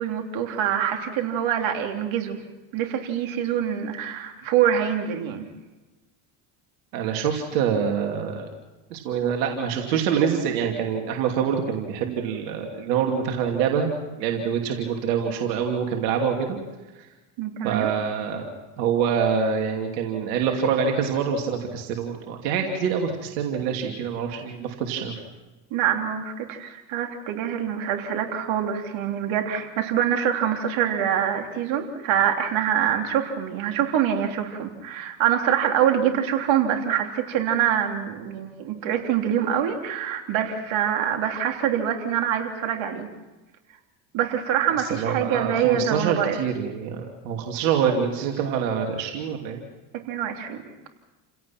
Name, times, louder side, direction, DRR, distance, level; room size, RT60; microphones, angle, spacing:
voice 1, 0.0-2.4 2.7-5.5 17.4-17.9 25.7-43.1 44.1-46.4 50.1-50.6, right 9 dB, 70° right, 3 dB, 3.4 m, -25 dB
voice 2, 6.9-8.5 8.9-13.9 14.2-16.6 17.0-17.1 17.6-18.5 18.8-25.1 45.0-49.6, right 7 dB, 85° right, 2 dB, 2.9 m, -25 dB
29.5 x 17.0 x 6.0 m, 1.1 s
supercardioid pair, 75°, 48 cm